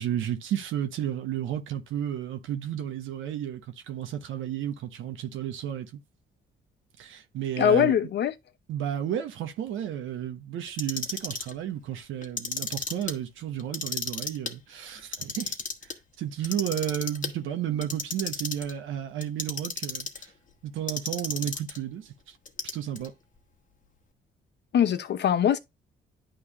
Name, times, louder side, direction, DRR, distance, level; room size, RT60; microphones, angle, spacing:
voice 1, 0.0-6.0 7.0-7.9 8.7-15.6 16.2-20.3 20.6-22.4 22.7-23.1, right 10 dB, 80° right, 1.0 m, -32 dB
voice 2, 7.6-8.3 24.7-25.6, left 9 dB, 60° left, 0.8 m, -22 dB
Clock, 10.7-11.5 12.2-13.1 13.6-14.5 15.0-15.9 16.4-17.3 17.8-18.7 19.2-20.3 20.9-21.8 22.5-23.1, left 5 dB, 40° left, 1.2 m, -33 dB
10.0 x 3.4 x 2.9 m
cardioid pair, 90°, 20 cm